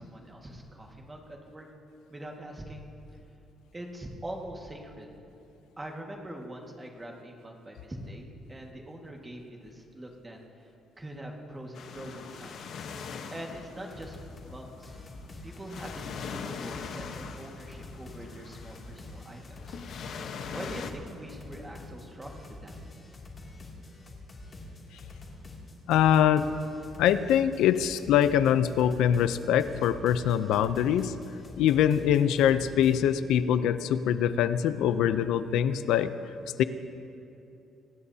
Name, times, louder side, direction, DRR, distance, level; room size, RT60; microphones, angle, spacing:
voice 1, 0.0-1.7 2.1-2.9 3.7-5.2 5.8-10.7 11.0-12.6 13.3-14.2 14.4-15.0 15.4-19.8 20.5-22.7, right 1 dB, 15° right, 0 dB, 1.8 m, -43 dB
sound 1, 11.7-20.9, left 6 dB, 55° left, 1.1 m, -42 dB
sound 2, 13.5-13.6 13.9-14.5 14.8-33.0, left 2 dB, 25° left, 2.6 m, -46 dB
voice 2, 25.9-26.5 27.0-31.1 31.6-36.1 36.6-36.7, left 9 dB, 90° left, 12 dB, 0.6 m, -23 dB
26.5 x 19.0 x 2.8 m, 2.8 s
cardioid pair, 170°, 0 cm